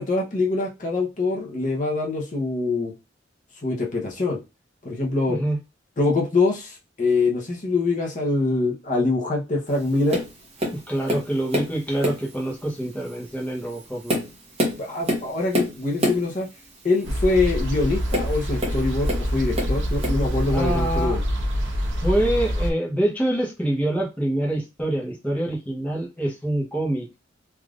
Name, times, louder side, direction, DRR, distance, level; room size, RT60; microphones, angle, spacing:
voice 1, 0.0-2.9 3.6-4.4 4.8-5.4 6.0-10.2 14.8-16.5 16.8-21.2, left 3 dB, 40° left, -2 dB, 0.7 m, -24 dB
voice 2, 5.3-5.6 10.7-14.2 20.4-21.2 22.0-27.1, right 1 dB, 10° left, -3 dB, 0.8 m, -25 dB
Tap, 10.1-10.3 10.6-11.7 12.0-12.4 13.0-13.2 13.7-16.3 18.1-19.3 19.5-20.3 21.0-21.1, equal, 35° right, 0.9 m, -26 dB
sound 1, 17.0-22.7, equal, 80° right, 0.8 m, -25 dB
3.4 x 2.4 x 2.4 m, 0.26 s
head